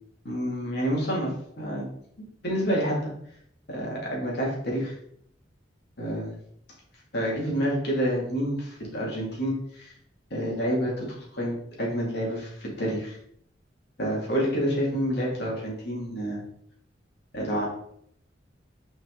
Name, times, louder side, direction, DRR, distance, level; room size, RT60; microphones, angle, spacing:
voice 1, 0.2-1.9 2.4-3.0 3.7-4.9 6.0-6.3 7.1-9.9 10.3-13.2 14.0-16.4 17.3-17.7, equal, 60° left, -4 dB, 2.4 m, -28 dB
6.0 x 4.6 x 3.9 m, 0.69 s
head